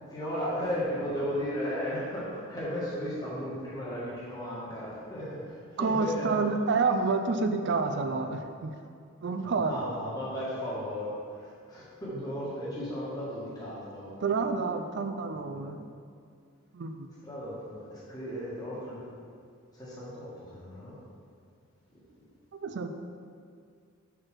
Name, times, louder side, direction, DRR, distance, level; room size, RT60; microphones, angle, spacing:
voice 1, 0.1-6.4 9.4-14.2 17.2-19.0 19.7-20.9, equal, 20° left, -8 dB, 1.5 m, -35 dB
voice 2, 5.8-8.7 9.2-9.8 14.2-15.9 16.7-17.1 22.6-22.9, right 4 dB, 55° right, 6 dB, 0.4 m, -28 dB
4.7 x 4.6 x 6.0 m, 2.3 s
head